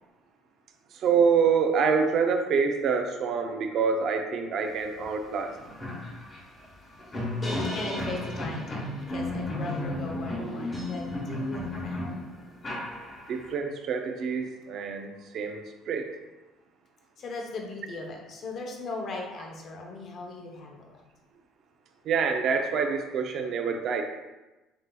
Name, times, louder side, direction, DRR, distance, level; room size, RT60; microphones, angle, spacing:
voice 1, 0.9-5.5 5.8-5.9 13.3-16.1 22.0-24.0, right 5 dB, 45° right, 5 dB, 0.4 m, -26 dB
sound 1, 5.0-5.1 5.4-13.5, left 1 dB, 20° left, 1.0 m, -33 dB
voice 2, 7.4-8.8 9.1-12.1 17.2-20.9, left 3 dB, 35° left, 1 dB, 0.7 m, -38 dB
7.5 x 2.7 x 2.2 m, 1.1 s
cardioid pair, 170°, 0 cm